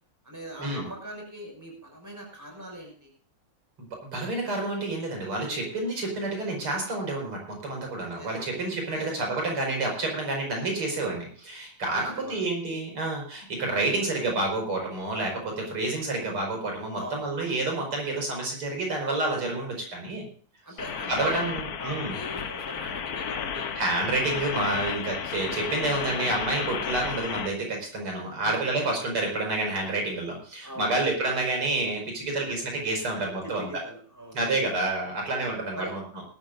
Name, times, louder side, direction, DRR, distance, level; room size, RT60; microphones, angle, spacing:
voice 1, 0.2-3.1 8.2-8.5 8.9-9.1 11.9-12.4 17.0-17.3 20.6-23.8 27.2-27.3 28.4-28.6 30.6-31.3 33.1-34.8 35.7-35.9, right 1 dB, 5° right, 1 dB, 5.8 m, -41 dB
voice 2, 3.8-20.2 21.1-22.2 23.8-33.7 34.3-36.0, right 2 dB, 85° right, 1 dB, 6.2 m, -29 dB
sound 1, 20.8-27.5, left 7 dB, 50° left, 1.4 m, -33 dB
19.0 x 13.0 x 2.6 m, 0.42 s
omnidirectional pair, 2.3 m